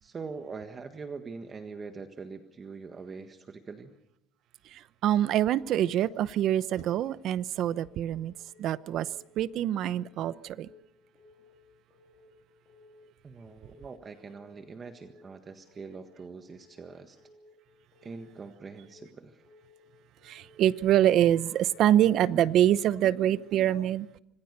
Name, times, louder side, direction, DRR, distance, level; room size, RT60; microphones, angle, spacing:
voice 1, 0.0-3.9 13.2-17.2 18.0-19.4, right 4 dB, 30° right, 1.6 m, -43 dB
voice 2, 4.7-8.3 8.6-10.7 20.2-24.1, right 11 dB, 60° right, 0.8 m, -25 dB
Keyboard (musical) / Alarm, 5.9-6.3 6.6-7.0 7.4-7.8 8.1-8.5 8.9-9.3 9.7-10.0 10.4-10.8 11.2-11.5 11.9-12.3 12.7-13.0 13.4-13.8 14.2-14.5 14.9-15.3 15.7-16.0 16.4-16.8 17.2-17.6 17.9-18.3 18.7-19.1 19.4-19.8 20.2-20.6 20.9-21.3 21.7-22.1, left 3 dB, 50° left, 4.0 m, -59 dB
26.0 x 20.0 x 6.8 m
cardioid pair, 130°, 0 cm